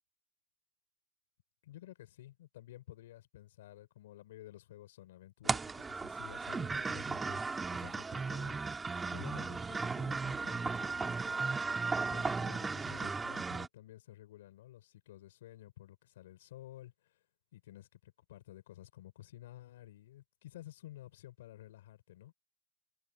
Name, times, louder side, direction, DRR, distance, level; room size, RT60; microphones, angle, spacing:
voice 1, 1.6-7.4 7.7-8.6 9.1-11.5 12.0-17.2 17.5-22.3, left 14 dB, 85° left, 5.8 m, -53 dB
sound 1, 5.4-13.7, right 4 dB, 15° right, 2.3 m, -36 dB
supercardioid pair, 120°, 0 cm